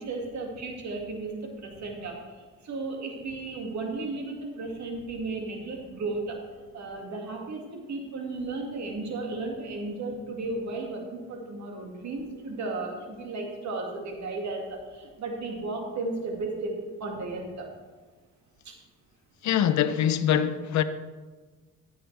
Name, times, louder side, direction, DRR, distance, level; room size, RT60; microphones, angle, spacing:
voice 1, 0.0-17.7 18.6-18.7, right 3 dB, 65° right, 2.3 m, -34 dB
voice 2, 19.4-20.8, left 10 dB, 65° left, 0.7 m, -23 dB
14.0 x 7.8 x 3.4 m
cardioid pair, 90°, 30 cm